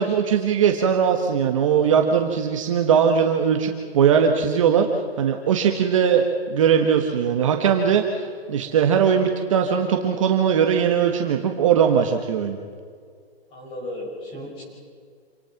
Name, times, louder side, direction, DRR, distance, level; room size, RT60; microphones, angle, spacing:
voice 1, 0.0-12.6, right 7 dB, 30° right, 4 dB, 1.4 m, -20 dB
voice 2, 13.5-14.6, left 1 dB, 15° left, -2 dB, 6.0 m, -35 dB
27.5 x 18.5 x 5.9 m, 2.1 s
hypercardioid pair, 170°, 32 cm